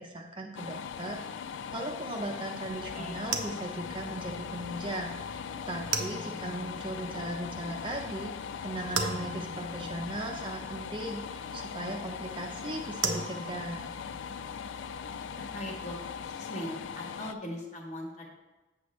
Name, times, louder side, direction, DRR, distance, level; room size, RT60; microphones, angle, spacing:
voice 1, 0.0-8.3 8.6-13.9, right 1 dB, 25° right, 1 dB, 0.6 m, -38 dB
sound 1, 0.6-17.3, left 7 dB, 75° left, 0.3 m, -40 dB
sound 2, 2.7-16.3, right 4 dB, 75° right, 0.8 m, -40 dB
voice 2, 2.8-3.1 15.4-16.0 16.2-18.3, left 1 dB, 35° left, 0 dB, 1.4 m, -40 dB
7.8 x 6.8 x 3.1 m, 1.1 s
head